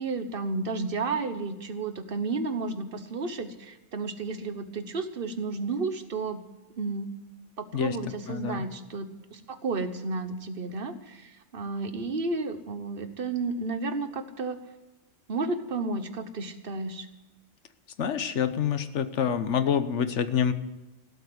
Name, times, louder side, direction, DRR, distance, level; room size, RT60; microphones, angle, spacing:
voice 1, 0.0-6.4 6.8-7.1 7.6-14.6 15.3-17.1, right 3 dB, 50° right, 10 dB, 1.3 m, -32 dB
voice 2, 8.3-8.6 18.0-20.5, left 8 dB, 75° left, 11 dB, 1.2 m, -27 dB
17.5 x 7.9 x 8.0 m, 1.1 s
omnidirectional pair, 1.2 m